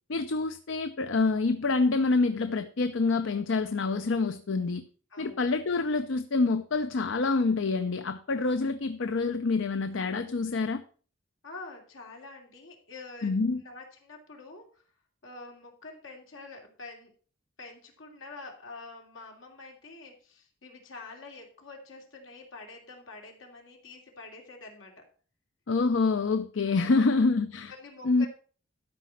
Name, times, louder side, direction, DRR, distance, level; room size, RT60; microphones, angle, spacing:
voice 1, 0.1-4.8 5.2-10.8 13.2-13.6 25.7-27.7 28.0-28.3, left 3 dB, 70° left, 0.6 m, -27 dB
voice 2, 5.1-5.5 11.4-13.3 13.6-14.8 15.2-17.1 17.6-25.0 26.7-27.2 27.7-28.3, left 3 dB, 85° left, 2.8 m, -46 dB
12.5 x 5.0 x 5.7 m
head